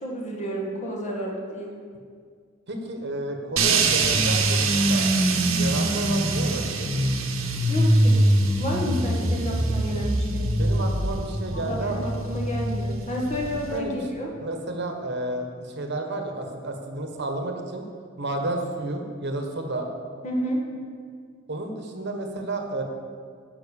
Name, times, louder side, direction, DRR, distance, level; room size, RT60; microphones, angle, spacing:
voice 1, 0.0-1.7 7.7-8.3 8.6-10.5 11.5-14.3 20.2-20.6, equal, 35° left, -1 dB, 1.7 m, -30 dB
voice 2, 2.7-5.1 5.6-6.9 9.1-9.6 10.5-12.1 13.7-14.1 14.4-17.8 18.2-19.9 21.5-22.8, right 2 dB, 55° right, 3 dB, 1.2 m, -31 dB
sound 1, 3.6-13.8, right 2 dB, 80° right, 1.1 m, -23 dB
10.0 x 5.8 x 6.9 m, 2.1 s
head